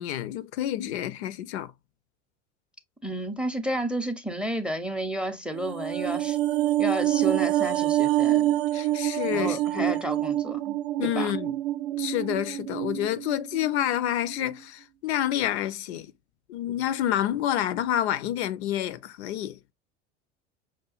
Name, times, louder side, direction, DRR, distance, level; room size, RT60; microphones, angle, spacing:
voice 1, 0.0-1.7 8.7-10.0 11.0-11.6 11.9-16.1 16.5-19.6, left 12 dB, 65° left, 0.5 m, -28 dB
voice 2, 3.0-6.4 6.8-8.6 9.3-10.8 11.0-11.3, right 1 dB, 5° right, 0.5 m, -31 dB
sound 1, 5.5-14.0 14.3-14.4, right 14 dB, 55° right, 0.5 m, -26 dB
5.7 x 2.3 x 2.3 m
figure-of-eight pair, 75°, 36 cm